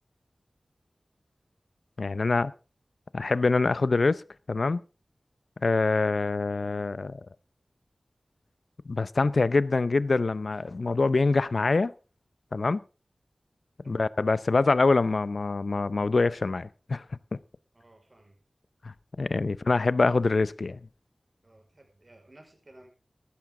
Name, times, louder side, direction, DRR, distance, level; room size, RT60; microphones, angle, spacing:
voice 1, 2.0-2.5 3.1-4.2 4.5-4.8 5.6-7.2 8.9-11.9 12.5-12.8 13.9-17.0 19.2-20.8, left 3 dB, 65° left, 0.6 m, -25 dB
voice 2, 17.7-18.4 21.4-22.9, right 1 dB, 40° right, 5.1 m, -55 dB
14.0 x 13.0 x 3.7 m
wide cardioid pair, 70°, 0 cm